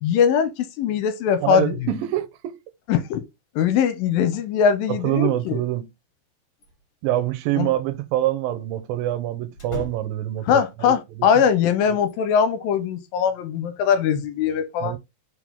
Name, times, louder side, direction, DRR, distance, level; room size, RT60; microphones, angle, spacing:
voice 1, 0.0-1.7 2.9-3.2 3.6-5.6 7.6-7.7 10.5-15.0, left 7 dB, 80° left, 2.5 m, -21 dB
voice 2, 1.4-2.6 4.9-5.9 7.0-11.3 14.8-15.0, right 14 dB, 80° right, 2.5 m, -25 dB
sound 1, 6.6-7.3 7.5-7.6 9.5-10.4 12.0-12.9, left 2 dB, 40° left, 3.0 m, -39 dB
5.3 x 5.0 x 3.6 m
omnidirectional pair, 4.2 m